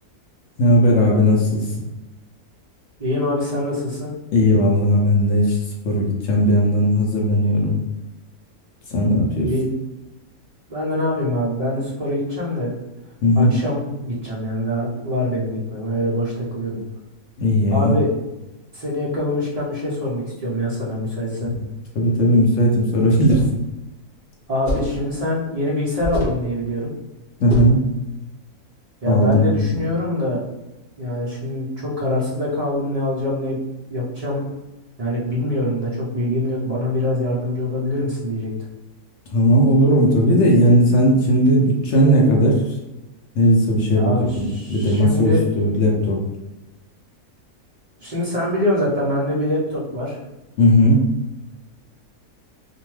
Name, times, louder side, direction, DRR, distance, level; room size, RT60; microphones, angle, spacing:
voice 1, 0.6-1.7 4.3-5.6 5.8-7.8 8.9-9.5 13.2-13.5 17.4-17.9 21.4-21.6 22.0-23.4 27.4-27.8 29.1-29.5 39.3-42.6 43.4-46.2 50.6-51.0, equal, 70° left, -1 dB, 0.7 m, -17 dB
voice 2, 3.0-4.1 9.4-9.8 10.7-12.7 13.4-16.8 17.7-18.1 18.7-21.5 24.5-26.9 29.0-30.4 31.0-33.6 33.9-34.4 35.0-38.5 43.9-45.4 48.0-50.2, left 1 dB, 60° right, -7 dB, 0.4 m, -24 dB
sound 1, 23.1-23.6 24.6-25.0 26.0-26.4 27.5-27.8, left 1 dB, 40° left, 0.8 m, -26 dB
2.6 x 2.2 x 3.0 m, 0.99 s
omnidirectional pair, 1.6 m